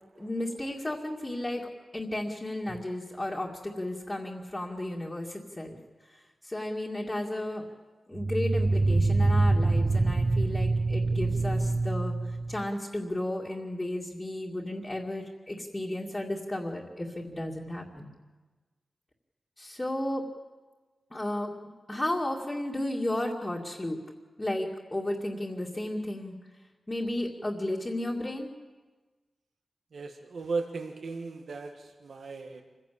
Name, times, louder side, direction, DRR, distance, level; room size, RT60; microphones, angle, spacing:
voice 1, 0.2-5.8 6.1-7.6 8.1-18.1 19.6-20.2 21.1-21.5 21.9-24.0 24.4-26.3 26.9-28.5, left 1 dB, 20° left, -3 dB, 2.3 m, -33 dB
sound 1, 2.7-2.8 8.1-12.7, right 2 dB, 35° right, 0.7 m, -25 dB
voice 2, 29.9-32.6, right 4 dB, 75° right, 3 dB, 1.8 m, -36 dB
27.0 x 16.0 x 8.6 m, 1.3 s
wide cardioid pair, 150°, 0 cm